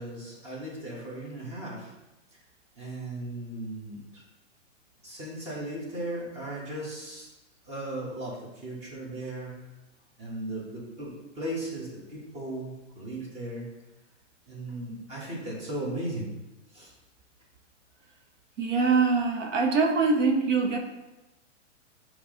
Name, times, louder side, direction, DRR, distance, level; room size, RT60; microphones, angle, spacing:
voice 1, 0.0-1.9 2.7-4.2 5.0-7.3 7.7-9.5 10.2-13.7 14.5-16.3 16.7-16.9, right 1 dB, 15° right, -5 dB, 1.5 m, -37 dB
voice 2, 18.6-20.8, right 4 dB, 80° right, 2 dB, 1.1 m, -23 dB
8.4 x 3.2 x 3.8 m, 1.0 s
hypercardioid pair, 155°, 37 cm